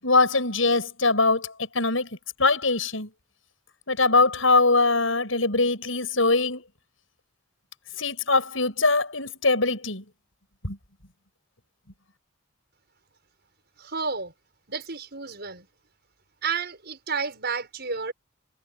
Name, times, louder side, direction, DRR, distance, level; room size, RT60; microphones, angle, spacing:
voice 1, 0.0-2.1 2.4-3.1 3.9-6.6 8.0-10.0 10.6-10.8, left 3 dB, 80° left, 7.9 m, -22 dB
voice 2, 13.8-14.3 14.7-15.7 16.4-18.1, right 5 dB, 55° right, 6.7 m, -31 dB
head